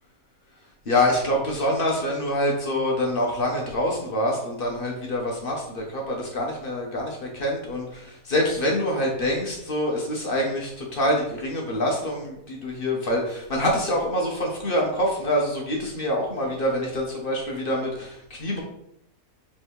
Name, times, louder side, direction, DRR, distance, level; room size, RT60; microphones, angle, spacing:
voice 1, 0.8-18.6, left 1 dB, 45° left, 0 dB, 0.9 m, -26 dB
3.4 x 3.3 x 4.5 m, 0.77 s
omnidirectional pair, 1.6 m